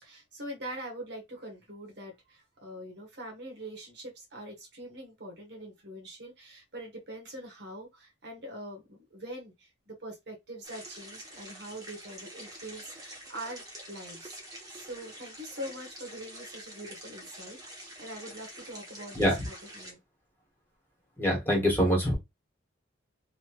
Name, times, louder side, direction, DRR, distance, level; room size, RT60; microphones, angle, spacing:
voice 1, 0.0-19.2 19.4-20.0, right 1 dB, 60° right, 1.1 m, -43 dB
sound 1, 10.6-19.9, right 1 dB, 20° right, 1.0 m, -47 dB
voice 2, 21.2-22.1, equal, 10° left, 1.3 m, -24 dB
3.1 x 2.9 x 2.9 m
head